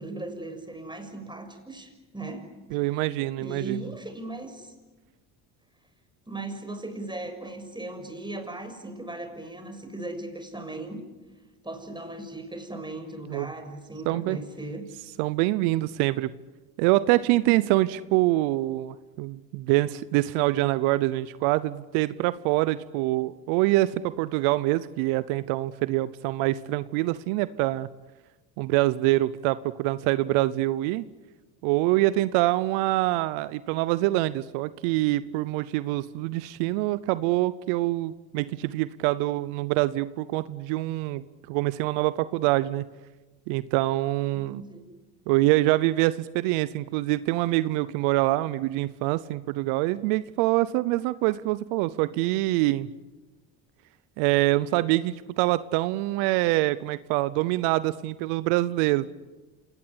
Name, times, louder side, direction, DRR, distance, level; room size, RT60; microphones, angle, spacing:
voice 1, 0.0-3.1 3.4-4.7 6.3-11.0 11.6-14.9 44.3-44.9, right 2 dB, 10° right, 5 dB, 6.5 m, -38 dB
voice 2, 2.7-3.8 13.3-13.5 14.1-14.4 15.2-16.3 16.8-27.9 28.6-31.0 31.6-42.8 43.5-44.6 45.3-52.9 54.2-59.1, right 17 dB, 75° right, 17 dB, 0.9 m, -25 dB
27.5 x 19.0 x 9.9 m, 1.2 s
supercardioid pair, 70°, 48 cm